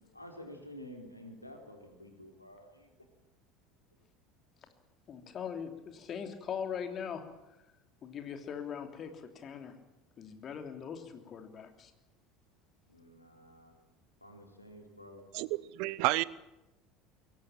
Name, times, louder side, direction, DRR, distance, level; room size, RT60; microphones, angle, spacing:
voice 1, 0.1-2.9 12.9-13.8 14.2-15.7, left 1 dB, 90° left, 3 dB, 3.7 m, -50 dB
voice 2, 5.1-7.2 8.0-9.7 10.2-11.9, left 7 dB, 35° left, 6 dB, 3.1 m, -41 dB
voice 3, 15.3-16.2, right 22 dB, 55° right, 20 dB, 0.7 m, -30 dB
22.5 x 18.0 x 9.0 m, 0.95 s
figure-of-eight pair, 70°, 0 cm